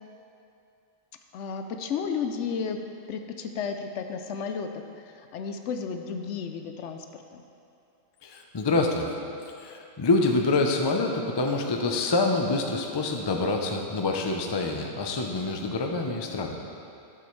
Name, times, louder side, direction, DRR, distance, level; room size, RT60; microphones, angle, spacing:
voice 1, 1.3-2.8 3.1-7.4, left 6 dB, 70° left, 6 dB, 0.8 m, -33 dB
voice 2, 8.2-9.1 9.6-16.6, left 3 dB, 35° left, 2 dB, 0.4 m, -26 dB
11.5 x 7.0 x 3.1 m, 2.6 s
omnidirectional pair, 1.3 m